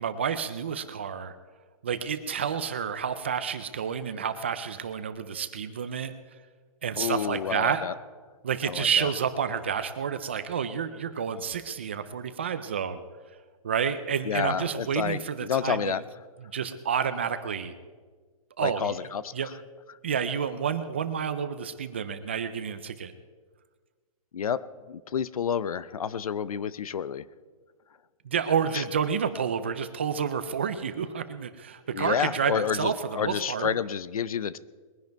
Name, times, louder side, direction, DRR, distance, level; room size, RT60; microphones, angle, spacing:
voice 1, 0.0-1.3 1.8-6.1 6.8-7.8 8.4-13.0 13.6-15.9 16.5-17.7 18.6-19.0 19.3-19.5 20.0-23.1 28.2-33.7, right 7 dB, 20° right, 11 dB, 0.4 m, -29 dB
voice 2, 7.0-7.9 8.7-9.1 14.2-16.0 18.6-19.3 24.3-27.3 28.7-28.8 31.9-34.6, left 7 dB, 75° left, 18 dB, 0.7 m, -30 dB
21.5 x 10.5 x 4.5 m, 1.5 s
hypercardioid pair, 175°, 19 cm